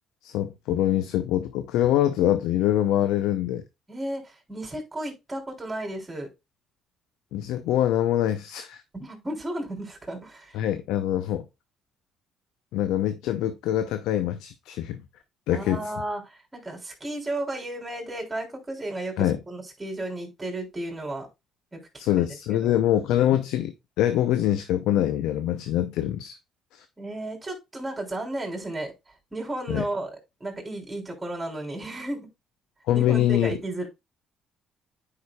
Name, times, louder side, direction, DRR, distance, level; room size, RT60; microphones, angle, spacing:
voice 1, 0.2-3.6 7.3-8.8 10.5-11.5 12.7-15.0 15.5-15.9 19.2-19.4 22.0-26.4 26.7-26.8 29.7-29.8 32.9-33.5, left 12 dB, 80° left, 0.6 m, -24 dB
voice 2, 3.9-6.3 8.9-10.6 15.5-21.3 21.7-21.8 22.1-22.2 22.6-22.8 27.0-28.9 29.3-30.1 30.4-32.2 32.9-33.9, right 1 dB, 20° right, 3.4 m, -33 dB
9.6 x 5.0 x 2.3 m
supercardioid pair, 70°, 0 cm